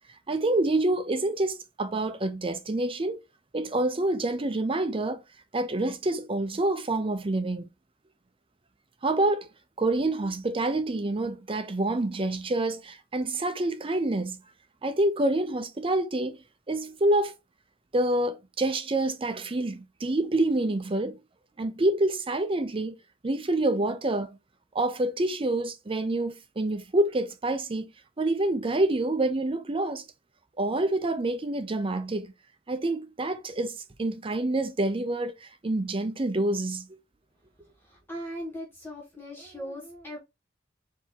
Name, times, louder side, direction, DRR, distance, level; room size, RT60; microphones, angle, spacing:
voice 1, 0.3-3.2 3.5-5.2 5.5-7.7 9.0-9.5 9.8-14.4 14.8-16.4 16.7-17.3 17.9-21.2 21.6-23.0 23.2-24.4 24.7-27.9 28.2-30.0 30.6-32.3 32.7-36.9, right 2 dB, 30° right, 0.6 m, -27 dB
voice 2, 37.6-40.2, equal, 10° left, 1.5 m, -39 dB
4.6 x 2.9 x 3.9 m
head